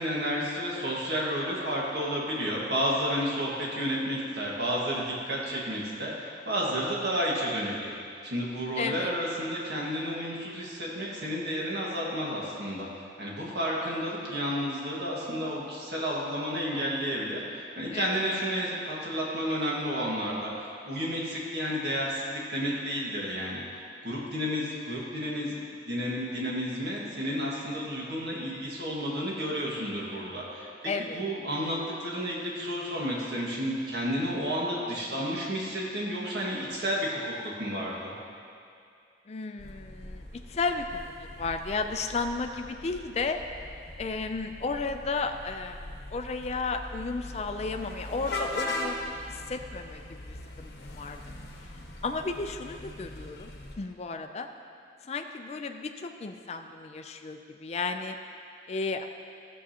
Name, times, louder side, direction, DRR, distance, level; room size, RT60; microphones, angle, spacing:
voice 1, 0.0-7.9 8.2-12.9 13.2-17.4 17.8-23.6 24.0-25.6 25.8-30.7 31.1-38.1, equal, 65° right, -4 dB, 1.7 m, -31 dB
voice 2, 8.8-9.1 17.9-18.2 30.8-31.2 39.3-43.4 44.0-51.2 52.0-53.5 53.8-54.5 55.0-58.2 58.7-59.0, left 4 dB, 35° left, 6 dB, 0.4 m, -33 dB
sound 1, 39.6-53.8, left 2 dB, 60° left, 0.9 m, -40 dB
13.5 x 7.2 x 2.9 m, 2.4 s
head